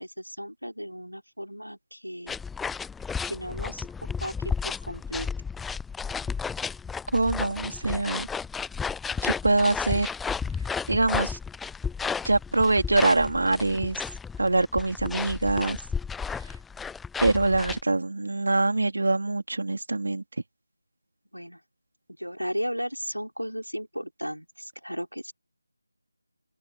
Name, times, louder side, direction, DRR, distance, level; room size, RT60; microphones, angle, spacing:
voice 1, 0.0-2.4 3.2-3.9 4.2-5.3 21.3-21.6 22.1-25.3, equal, 90° right, 5.3 m, -35 dB
sound 1, 2.3-17.8, left 5 dB, 5° left, 0.3 m, -33 dB
voice 2, 7.1-8.3 9.2-10.1 10.9-11.4 12.2-14.0 14.4-15.8 17.2-20.2, right 2 dB, 55° right, 4.0 m, -24 dB
open air
figure-of-eight pair, 160°, 0 cm